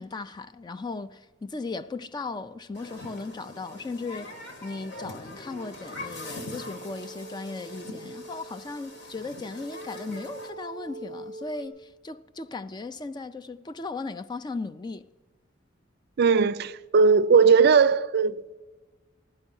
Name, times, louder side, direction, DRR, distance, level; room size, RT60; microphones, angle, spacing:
voice 1, 0.0-4.3 4.6-15.1, left 3 dB, 20° left, 0.3 m, -37 dB
Human group actions, 2.7-10.5, left 2 dB, 60° left, 1.6 m, -43 dB
sound 1, 5.8-11.7, right 2 dB, 80° left, 3.7 m, -44 dB
voice 2, 16.2-18.6, right 5 dB, 55° right, 0.4 m, -19 dB
15.5 x 11.5 x 5.4 m
head